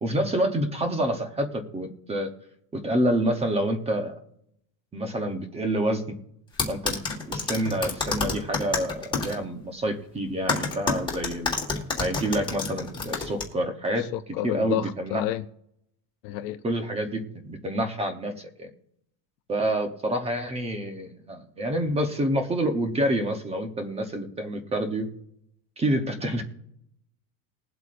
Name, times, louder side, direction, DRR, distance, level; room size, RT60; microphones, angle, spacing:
voice 1, 0.0-2.3 2.7-4.1 4.9-6.2 6.7-11.6 12.0-14.1 14.4-15.2 16.6-18.7 19.5-25.1 25.8-26.4, right 1 dB, 15° right, 0.8 m, -28 dB
sound 1, 6.6-9.3 10.5-13.4, left 4 dB, 10° left, 1.6 m, -28 dB
voice 2, 14.0-15.4 16.2-16.6, left 13 dB, 50° left, 0.5 m, -30 dB
21.0 x 7.9 x 2.5 m
cardioid pair, 175°, 49 cm